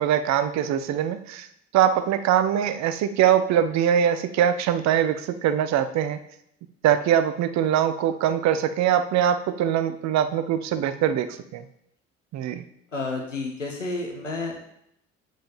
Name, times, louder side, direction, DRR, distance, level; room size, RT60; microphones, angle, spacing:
voice 1, 0.0-1.5 1.7-6.2 6.8-11.6 12.3-12.6, right 9 dB, 50° right, 11 dB, 0.8 m, -22 dB
voice 2, 12.9-14.6, left 3 dB, 90° left, 2 dB, 0.9 m, -30 dB
7.5 x 5.4 x 7.1 m, 0.75 s
figure-of-eight pair, 50°, 36 cm